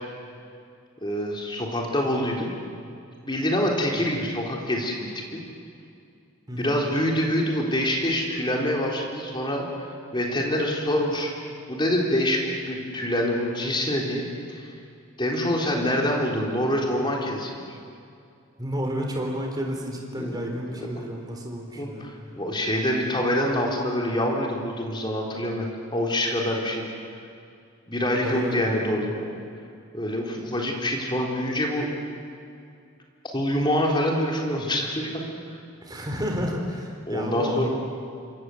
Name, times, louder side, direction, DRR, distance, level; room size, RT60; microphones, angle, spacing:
voice 1, 1.0-2.5 3.3-5.4 6.6-14.7 15.2-17.6 20.2-20.3 20.8-21.0 21.7-26.8 27.9-29.2 29.9-31.9 33.3-35.3 37.1-37.7, left 1 dB, 20° left, 0 dB, 3.8 m, -26 dB
voice 2, 6.5-6.8 18.6-22.1 28.1-28.9 35.8-37.7, equal, 20° right, 1 dB, 4.1 m, -31 dB
27.5 x 25.0 x 7.9 m, 2.5 s
head